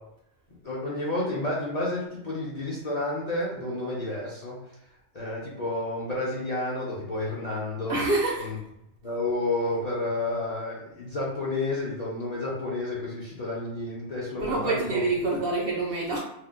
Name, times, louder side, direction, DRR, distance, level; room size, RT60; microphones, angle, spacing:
voice 1, 0.6-4.6 5.1-8.0 8.4-8.6 9.0-15.0, left 2 dB, 45° left, -6 dB, 0.6 m, -30 dB
voice 2, 7.9-8.5 14.4-16.2, right 2 dB, 60° right, -2 dB, 0.7 m, -26 dB
2.7 x 2.1 x 3.5 m, 0.84 s
omnidirectional pair, 1.3 m